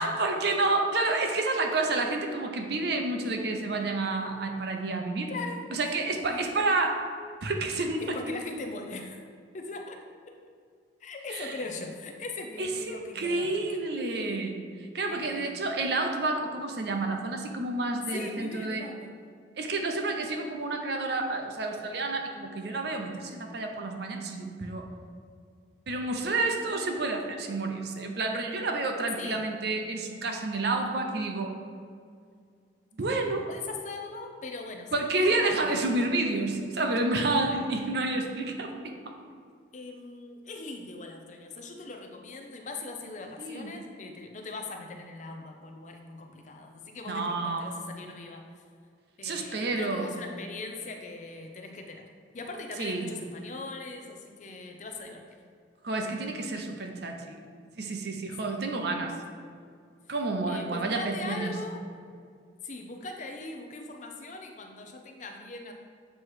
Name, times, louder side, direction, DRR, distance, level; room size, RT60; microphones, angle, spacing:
voice 1, 0.0-5.3 5.7-7.0 7.4-8.1 11.3-11.5 12.6-14.6 14.9-18.8 19.6-24.8 25.9-31.5 33.0-33.4 34.9-38.9 43.4-43.7 47.1-47.7 49.2-50.1 52.8-53.1 55.8-57.4 57.8-59.1 60.1-61.5, right 2 dB, 55° right, 3 dB, 0.6 m, -29 dB
voice 2, 5.3-5.7 6.2-6.7 8.0-9.2 9.5-10.0 11.0-14.0 15.1-15.8 18.1-19.1 29.2-29.4 33.5-36.1 37.5-38.0 39.7-48.6 49.2-52.0 52.3-55.2 58.4-58.6 60.5-61.8 62.6-65.7, left 3 dB, 40° left, 3 dB, 0.5 m, -40 dB
7.6 x 3.1 x 4.7 m, 2.2 s
head